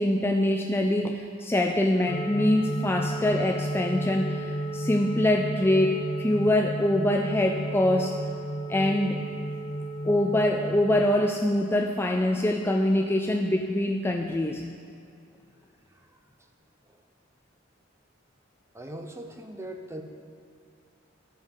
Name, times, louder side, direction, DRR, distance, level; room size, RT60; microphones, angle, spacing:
voice 1, 0.0-8.2 8.7-9.3 10.0-14.7, left 1 dB, 10° left, 2 dB, 0.4 m, -24 dB
sound 1, 2.1-11.1, right 1 dB, 50° left, 0.9 m, -33 dB
voice 2, 15.9-16.2 16.9-17.0 18.7-20.0, right 1 dB, 15° right, 4 dB, 0.7 m, -40 dB
13.0 x 5.7 x 7.2 m, 2.4 s
head